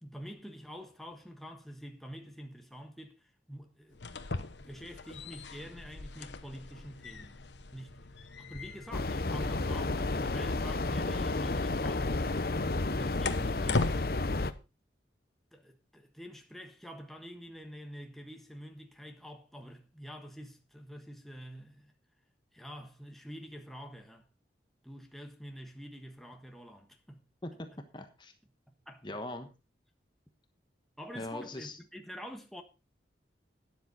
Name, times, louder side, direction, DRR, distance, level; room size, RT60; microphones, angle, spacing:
voice 1, 0.0-4.3 4.5-7.4 7.7-12.2 12.8-13.9 15.5-21.9 22.5-24.3 24.8-27.3 28.9-29.1 31.0-32.6, equal, ahead, 1.4 m, -47 dB
sound 1, 3.9-14.0, left 3 dB, 75° left, 1.1 m, -40 dB
sound 2, 8.9-14.5, left 2 dB, 55° left, 0.8 m, -31 dB
voice 2, 27.4-28.3 29.0-29.5 31.1-31.8, left 1 dB, 25° left, 1.2 m, -41 dB
12.5 x 10.0 x 4.1 m
head